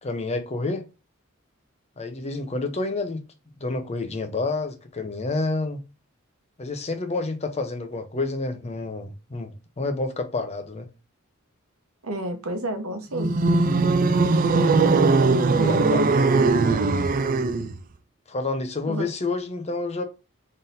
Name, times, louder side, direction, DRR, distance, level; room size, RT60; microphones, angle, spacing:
voice 1, 0.0-0.9 2.0-3.2 3.6-5.8 6.6-9.5 9.8-10.9 15.6-16.1 18.3-20.0, left 3 dB, 30° left, 0.7 m, -29 dB
voice 2, 12.0-13.3 15.5-16.1 18.8-19.1, right 1 dB, 80° right, 1.0 m, -29 dB
sound 1, 13.1-17.8, right 3 dB, 40° right, 0.4 m, -20 dB
4.0 x 3.7 x 2.5 m
head